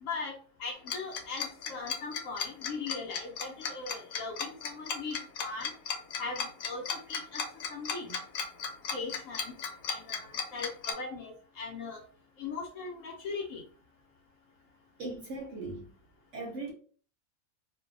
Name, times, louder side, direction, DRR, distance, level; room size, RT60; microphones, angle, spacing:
voice 1, 0.0-5.7 6.2-6.8 7.1-7.4 7.7-8.1 8.9-9.5 9.9-12.0 12.4-13.6, left 4 dB, 65° left, 0.9 m, -39 dB
Tick-tock, 0.9-10.9, left 6 dB, 85° left, 1.1 m, -35 dB
voice 2, 15.0-15.8 16.3-16.7, right 2 dB, 60° right, 0.8 m, -38 dB
2.6 x 2.2 x 2.5 m
omnidirectional pair, 1.6 m